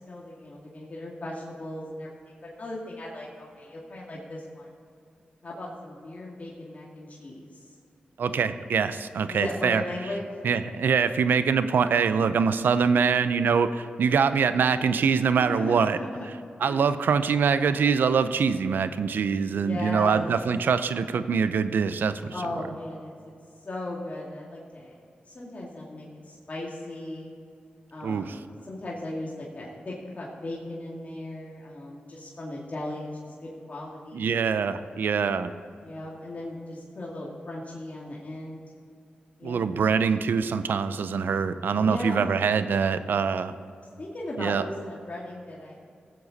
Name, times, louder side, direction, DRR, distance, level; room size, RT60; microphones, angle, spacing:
voice 1, 0.0-4.7 5.4-7.6 9.2-10.2 15.3-16.4 16.7-16.8 19.5-20.3 22.3-23.3 23.6-25.0 25.3-27.3 27.9-34.3 35.8-38.6 39.4-39.7 41.8-42.3 44.0-45.7, left 1 dB, 45° left, -4 dB, 2.1 m, -37 dB
voice 2, 8.2-9.8 10.4-16.0 16.6-22.2 28.0-28.4 34.1-35.5 39.4-43.5 44.4-44.6, right 6 dB, 80° right, 12 dB, 0.5 m, -24 dB
16.0 x 7.7 x 4.1 m, 2.4 s
cardioid pair, 45°, 3 cm